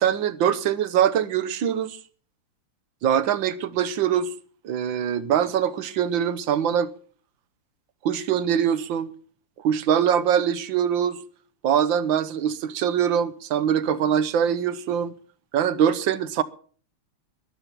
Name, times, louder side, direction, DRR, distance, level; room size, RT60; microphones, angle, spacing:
voice 1, 0.0-2.0 3.0-4.3 4.6-6.9 8.0-9.1 9.6-11.2 11.6-15.1 15.5-16.4, right 9 dB, 70° right, 1.5 m, -23 dB
13.5 x 11.5 x 5.9 m
omnidirectional pair, 2.4 m